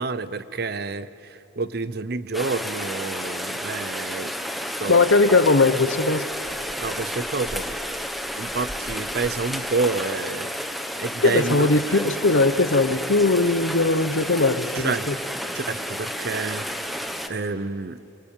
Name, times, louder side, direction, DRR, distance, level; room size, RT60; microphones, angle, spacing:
voice 1, 0.0-4.3 4.8-5.0 6.8-7.8 8.4-10.5 11.0-12.0 14.7-15.1 15.5-16.6 17.3-18.0, right 3 dB, 50° right, 0.7 m, -29 dB
Rain, 2.3-17.3, equal, ahead, 1.0 m, -31 dB
voice 2, 4.9-6.2 11.2-15.1, left 3 dB, 75° left, 1.0 m, -19 dB
24.0 x 23.0 x 9.0 m
head